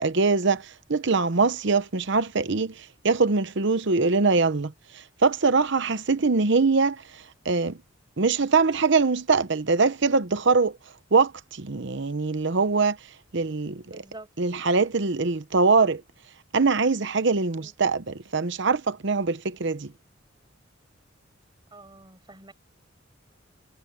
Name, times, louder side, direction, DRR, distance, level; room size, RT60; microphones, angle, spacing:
voice 1, 0.0-7.8 8.2-10.8 11.1-13.0 13.3-13.8 14.4-16.0 16.5-19.9, right 4 dB, 60° right, 0.9 m, -23 dB
voice 2, 13.9-14.3 17.6-17.7 21.7-22.5, right 2 dB, 20° right, 7.8 m, -46 dB
head